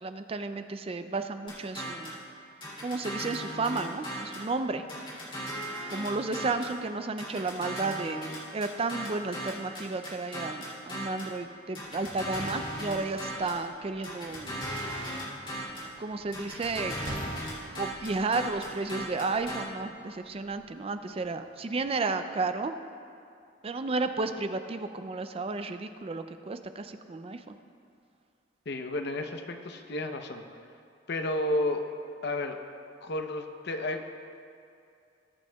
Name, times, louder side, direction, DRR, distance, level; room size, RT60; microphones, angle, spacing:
voice 1, 0.0-2.1 2.8-4.8 5.9-14.8 16.0-17.0 17.8-22.7 23.6-27.6, right 3 dB, 30° right, 9 dB, 0.4 m, -32 dB
sound 1, 1.5-2.2 2.6-4.5 4.9-6.8 7.2-11.3 11.7-13.6 14.0-15.9 16.3-19.6, equal, 25° left, 2.7 m, -37 dB
sound 2, 11.1-22.0, right 1 dB, 60° right, 2.4 m, -50 dB
voice 2, 28.7-30.4 31.1-31.9 32.2-32.6 33.0-34.0, left 1 dB, 60° left, 5 dB, 0.8 m, -31 dB
20.0 x 8.9 x 2.3 m, 2.5 s
head